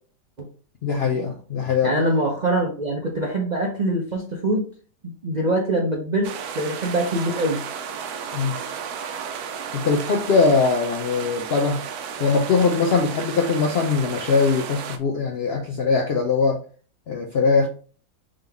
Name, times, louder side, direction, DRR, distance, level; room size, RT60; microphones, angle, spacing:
voice 1, 0.8-1.9 8.3-8.6 9.7-11.8 12.2-16.6 17.1-17.7, left 4 dB, 65° left, 0.6 m, -21 dB
voice 2, 1.8-4.7 5.0-7.6, right 1 dB, 45° right, 0.6 m, -24 dB
sound 1, 6.2-15.0, right 7 dB, 75° right, 1.1 m, -33 dB
3.8 x 3.6 x 3.4 m
omnidirectional pair, 1.7 m